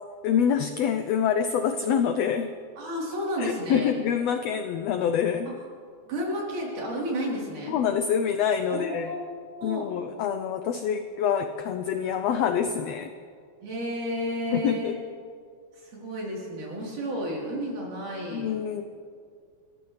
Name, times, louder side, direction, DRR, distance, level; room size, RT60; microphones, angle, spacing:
voice 1, 0.2-2.5 3.4-5.5 7.7-9.1 9.6-13.1 14.5-14.9 18.3-18.8, left 8 dB, 85° left, 8 dB, 1.4 m, -26 dB
voice 2, 2.8-3.9 5.5-5.6 6.1-7.8 8.7-9.3 9.6-9.9 13.6-15.0 15.8-18.5, equal, 75° right, -4 dB, 5.2 m, -32 dB
29.5 x 14.0 x 3.3 m, 2.2 s
omnidirectional pair, 3.6 m